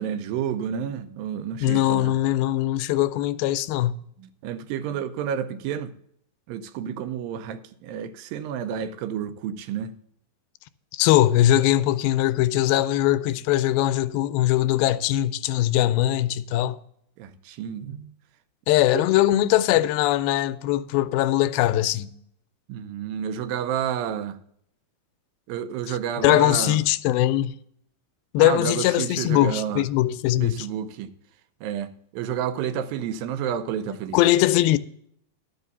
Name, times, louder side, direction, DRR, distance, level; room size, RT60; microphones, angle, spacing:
voice 1, 0.0-2.2 4.2-5.9 6.5-9.9 17.2-18.1 18.9-19.0 22.7-24.4 25.5-26.8 28.4-29.9 30.4-31.1 31.6-34.2, right 9 dB, 80° right, 2.4 m, -30 dB
voice 2, 1.6-4.0 10.9-16.8 18.7-22.1 25.9-26.0 26.2-27.6 28.3-30.7 34.1-34.8, left 14 dB, 90° left, 2.4 m, -21 dB
12.0 x 5.6 x 6.7 m
omnidirectional pair, 4.2 m